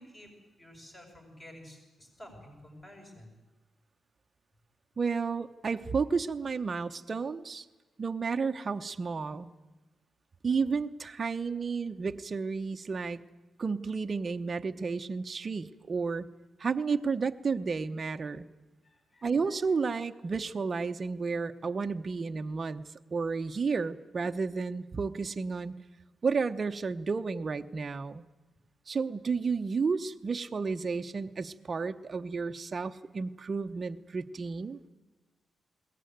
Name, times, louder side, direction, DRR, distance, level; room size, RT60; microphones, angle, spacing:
voice 1, 0.0-3.3 18.8-19.7, left 1 dB, 25° left, 2 dB, 6.9 m, -52 dB
voice 2, 5.0-7.7 8.0-9.5 10.4-13.2 13.6-16.3 16.6-18.5 19.2-22.8 23.1-25.7 26.2-28.2 28.9-34.8, right 5 dB, 35° right, 7 dB, 0.8 m, -32 dB
21.0 x 18.0 x 9.3 m, 1.2 s
wide cardioid pair, 150°, 0 cm